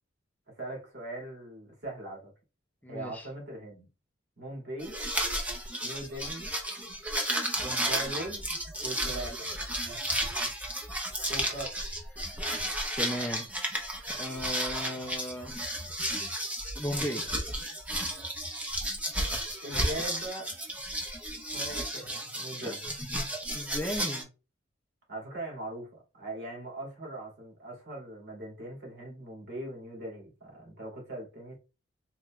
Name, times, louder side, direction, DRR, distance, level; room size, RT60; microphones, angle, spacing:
voice 1, 0.6-2.3 2.9-3.9 4.4-5.0 5.8-6.5 7.5-8.5 8.8-9.5 11.3-11.8 19.6-20.5 21.5-22.9 25.1-31.5, right 1 dB, 60° right, 2.3 m, -40 dB
voice 2, 2.8-3.3 13.0-13.5 14.2-15.6 16.8-17.5 22.6-22.7 23.5-24.3, equal, 10° left, 0.5 m, -36 dB
sound 1, 4.8-24.2, right 1 dB, 10° right, 0.9 m, -33 dB
4.2 x 3.4 x 2.4 m
head